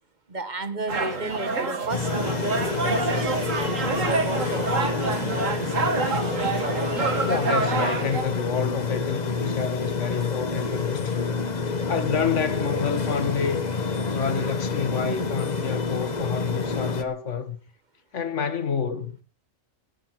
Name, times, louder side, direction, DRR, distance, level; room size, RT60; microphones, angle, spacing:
voice 1, 0.3-3.6 4.0-4.7 5.0-6.0 7.3-7.6, right 2 dB, 35° right, 1.5 m, -33 dB
sound 1, 0.9-8.2, right 4 dB, 70° right, 2.3 m, -27 dB
sound 2, 1.9-17.0, left 4 dB, 35° left, 1.3 m, -28 dB
voice 2, 7.2-11.3 11.9-13.7 14.1-17.6 18.1-19.2, left 6 dB, 60° left, 1.6 m, -29 dB
18.0 x 12.5 x 4.6 m
omnidirectional pair, 1.4 m